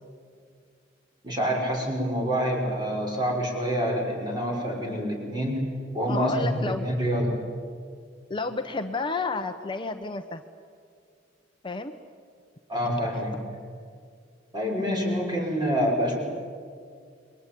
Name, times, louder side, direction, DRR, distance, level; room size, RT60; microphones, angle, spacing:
voice 1, 1.2-5.7 5.9-7.4 12.7-13.4 14.5-16.2, equal, 25° right, 0 dB, 6.2 m, -27 dB
voice 2, 6.1-6.9 8.3-10.4 11.6-11.9, left 3 dB, 25° left, 6 dB, 1.0 m, -31 dB
28.0 x 23.0 x 9.2 m, 2.2 s
head